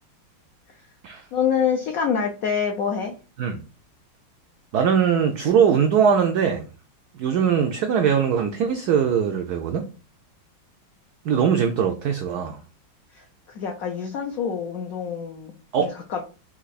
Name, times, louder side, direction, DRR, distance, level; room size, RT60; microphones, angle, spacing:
voice 1, 1.3-3.1 13.1-16.2, left 7 dB, 85° left, 0.7 m, -26 dB
voice 2, 4.7-6.7 7.2-9.9 11.2-12.6 15.7-15.9, right 7 dB, 90° right, 0.8 m, -21 dB
4.4 x 2.7 x 4.0 m
omnidirectional pair, 2.2 m